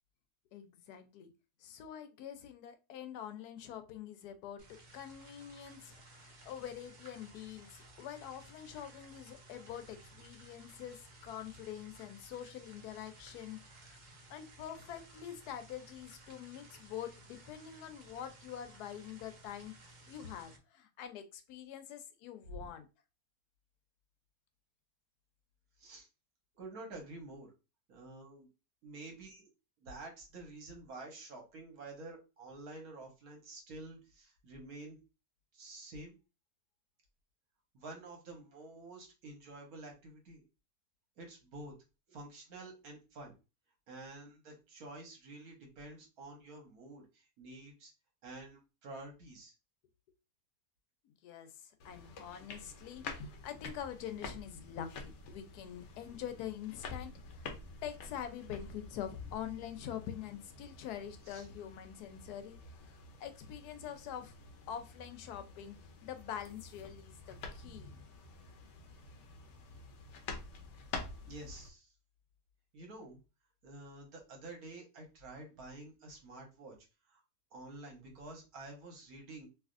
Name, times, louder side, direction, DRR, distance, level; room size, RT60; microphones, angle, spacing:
voice 1, 0.5-1.3 1.6-14.0 14.3-19.7 20.1-22.9 51.2-57.5 57.8-64.3 64.7-65.8 66.0-68.1, left 10 dB, 90° left, 8 dB, 1.1 m, -45 dB
sound 1, 4.6-20.6, right 2 dB, 45° right, 0.6 m, -57 dB
voice 2, 26.5-27.5 27.9-28.5 28.8-29.4 29.8-35.0 35.5-36.2 37.7-40.4 41.2-41.8 42.1-43.3 43.9-47.9 48.2-49.5 61.3-61.5 71.3-71.9 72.7-73.2 73.6-76.7 77.1-77.2 77.5-79.5, right 2 dB, 70° right, 1 dB, 1.5 m, -49 dB
sound 2, 51.8-71.7, left 3 dB, 60° left, 0.8 m, -49 dB
3.3 x 2.7 x 2.4 m, 0.29 s
omnidirectional pair, 1.6 m